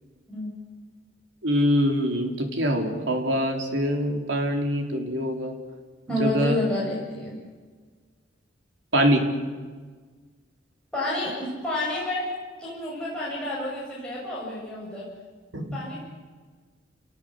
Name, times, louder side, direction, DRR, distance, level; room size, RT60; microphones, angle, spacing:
voice 1, 1.4-5.6 6.2-6.6 8.9-9.3 15.5-15.8, equal, 75° right, 3 dB, 4.1 m, -24 dB
voice 2, 6.1-7.4 10.9-12.3 12.6-15.1 15.7-16.0, left 1 dB, 5° left, -7 dB, 7.1 m, -29 dB
29.0 x 18.5 x 8.2 m, 1.5 s
head